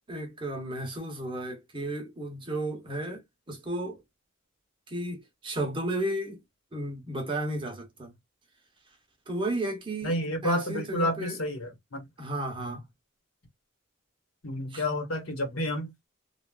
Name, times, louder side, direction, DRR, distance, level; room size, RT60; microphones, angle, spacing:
voice 1, 0.1-4.0 4.9-6.4 6.7-8.1 9.3-10.1 10.4-11.4 12.2-12.8 14.7-14.8, right 1 dB, 25° right, 0.9 m, -33 dB
voice 2, 10.0-12.0 12.6-12.8 14.4-16.1, equal, 90° left, 1.3 m, -30 dB
3.1 x 2.4 x 2.3 m
head